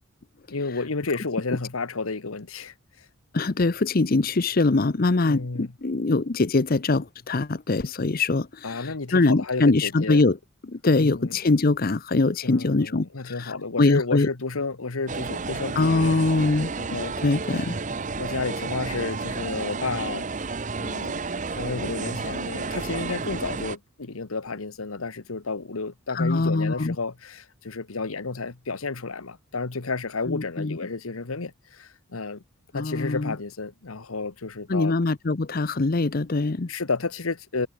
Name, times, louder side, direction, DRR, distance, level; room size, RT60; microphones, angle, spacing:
voice 1, 0.5-3.1 5.2-5.7 8.6-10.3 11.0-11.4 12.4-16.2 16.8-17.1 18.2-20.3 20.8-21.2 21.5-32.4 32.7-35.0 36.7-37.7, left 3 dB, 90° left, 1.3 m, -31 dB
voice 2, 3.3-10.4 10.7-14.3 15.8-16.7 17.2-17.8 26.1-26.9 30.3-30.8 32.7-33.3 34.7-36.7, left 3 dB, 45° left, 0.7 m, -23 dB
sound 1, 15.1-23.8, right 4 dB, 35° right, 0.9 m, -31 dB
head